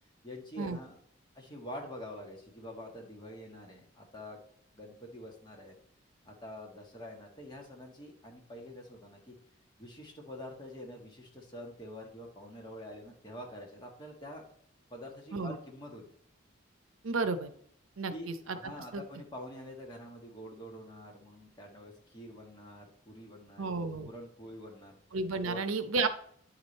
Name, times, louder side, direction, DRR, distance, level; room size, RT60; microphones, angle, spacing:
voice 1, 0.2-1.0 1.3-4.4 4.7-5.7 6.2-9.3 9.8-14.5 14.9-16.1 18.1-25.0 25.4-25.7, left 1 dB, 20° left, 0 dB, 1.6 m, -46 dB
voice 2, 17.0-17.5 18.0-18.3 18.9-19.0 23.6-24.1 25.1-26.1, right 3 dB, 85° right, 11 dB, 0.7 m, -32 dB
9.5 x 5.0 x 4.1 m, 0.65 s
head